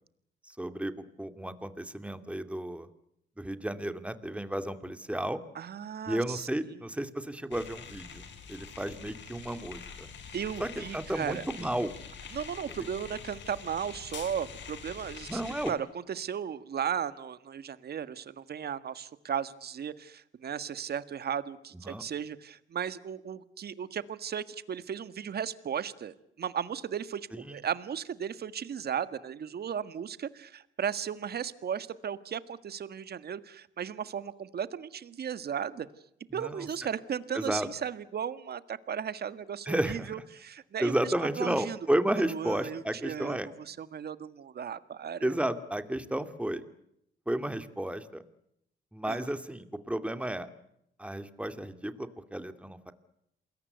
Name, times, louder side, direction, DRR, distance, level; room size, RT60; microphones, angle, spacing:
voice 1, 0.4-0.9 1.2-2.9 3.4-5.4 6.1-10.1 10.6-12.0 15.3-15.7 21.9-22.0 27.3-27.6 36.4-36.7 37.3-37.7 39.7-40.1 40.8-43.5 45.2-46.6 47.3-48.2 48.9-50.5 51.0-52.9, right 1 dB, 5° right, 10 dB, 2.4 m, -32 dB
voice 2, 5.6-6.8 10.3-11.4 12.3-15.4 15.7-35.9 36.3-41.8 42.3-45.3 49.1-49.2, right 8 dB, 55° right, 14 dB, 1.7 m, -36 dB
sound 1, 7.5-15.7, left 6 dB, 65° left, 5.7 m, -45 dB
28.0 x 22.0 x 8.1 m, 0.77 s
cardioid pair, 90°, 20 cm